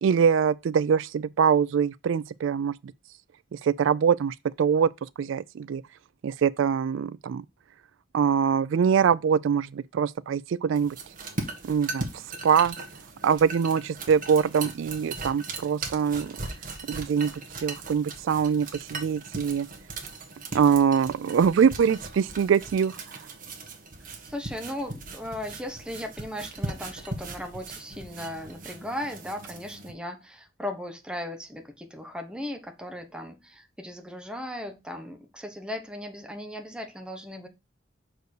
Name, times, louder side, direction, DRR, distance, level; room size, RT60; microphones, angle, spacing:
voice 1, 0.0-2.7 3.5-4.9 5.2-5.8 6.2-7.4 8.1-11.0 11.6-12.1 12.4-12.8 13.2-16.4 16.9-17.3 17.6-19.7 20.5-23.0, right 7 dB, 75° right, 0.3 m, -23 dB
sound 1, 10.7-29.9, right 3 dB, 45° right, 1.7 m, -39 dB
voice 2, 24.3-37.5, left 1 dB, 5° right, 1.3 m, -37 dB
6.5 x 4.6 x 4.8 m
head